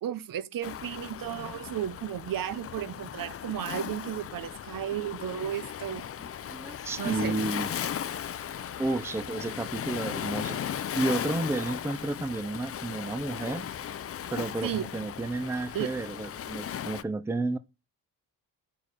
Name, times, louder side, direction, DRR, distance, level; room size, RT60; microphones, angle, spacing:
voice 1, 0.0-6.0 7.0-7.3 14.6-14.8 15.7-15.9, right 11 dB, 65° right, 0.8 m, -34 dB
Waves surf, 0.6-17.0, left 9 dB, 40° left, 0.5 m, -37 dB
voice 2, 6.5-7.7 8.8-10.6 10.9-13.7 14.3-17.6, right 2 dB, 5° right, 0.5 m, -31 dB
6.9 x 5.4 x 6.6 m
cardioid pair, 125°, 36 cm